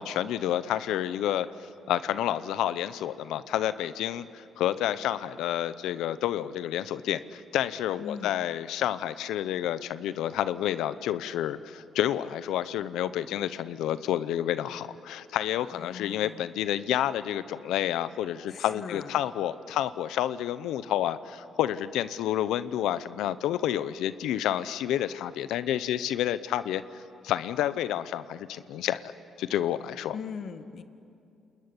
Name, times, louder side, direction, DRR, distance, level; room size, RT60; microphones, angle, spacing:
voice 1, 0.0-1.5 1.9-29.1 29.4-30.2, left 11 dB, 90° left, 14 dB, 0.8 m, -29 dB
voice 2, 8.0-8.4 15.7-16.4 18.5-19.1 30.1-30.8, left 6 dB, 60° left, 9 dB, 1.6 m, -39 dB
29.5 x 20.5 x 9.9 m, 2.6 s
cardioid pair, 90°, 0 cm